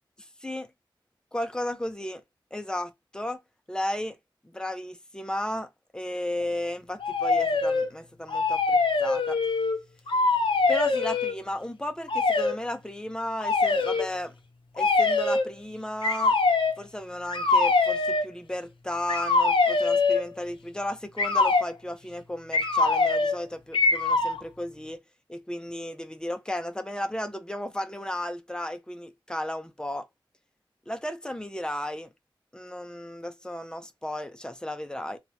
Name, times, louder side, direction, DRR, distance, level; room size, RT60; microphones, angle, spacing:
voice 1, 0.2-0.7 1.3-2.2 2.5-3.4 3.7-4.2 4.4-9.4 10.7-14.3 14.7-16.4 16.8-25.0 25.3-30.0 30.9-32.1 32.5-35.2, left 1 dB, 10° left, 0.6 m, -34 dB
sound 1, 7.0-7.9 8.3-9.8 10.1-11.4 12.1-12.6 13.4-14.1 14.8-15.5 16.0-16.8 17.3-18.3 19.1-20.3 21.2-21.7 22.5-23.4 23.7-24.4, left 3 dB, 80° left, 0.6 m, -23 dB
2.9 x 2.3 x 2.8 m
cardioid pair, 50°, 9 cm